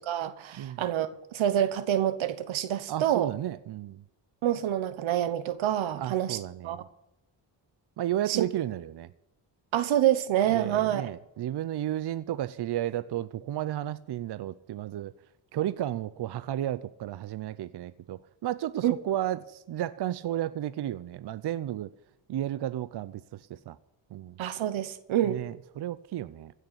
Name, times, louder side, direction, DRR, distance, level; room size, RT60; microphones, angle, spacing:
voice 1, 0.0-3.3 4.4-6.4 6.6-6.8 8.3-8.5 9.7-11.1 18.8-18.9 24.4-25.4, right 11 dB, 90° right, 1.2 m, -27 dB
voice 2, 2.9-4.0 6.0-6.9 8.0-9.1 10.5-15.1 15.5-21.9 22.3-23.8 24.1-24.4 25.2-26.5, right 12 dB, 60° right, 0.6 m, -33 dB
16.0 x 6.6 x 9.6 m
cardioid pair, 90°, 46 cm